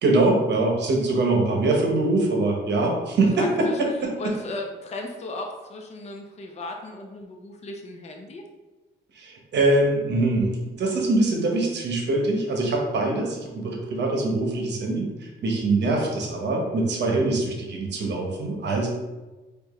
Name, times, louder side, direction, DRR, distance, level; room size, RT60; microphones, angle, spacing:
voice 1, 0.0-4.1 9.1-10.5 10.8-18.9, right 2 dB, 60° right, 0 dB, 1.0 m, -23 dB
voice 2, 3.4-3.8 4.2-8.4, left 2 dB, 35° left, 2 dB, 0.5 m, -35 dB
4.4 x 2.5 x 3.1 m, 1.2 s
cardioid pair, 90°, 20 cm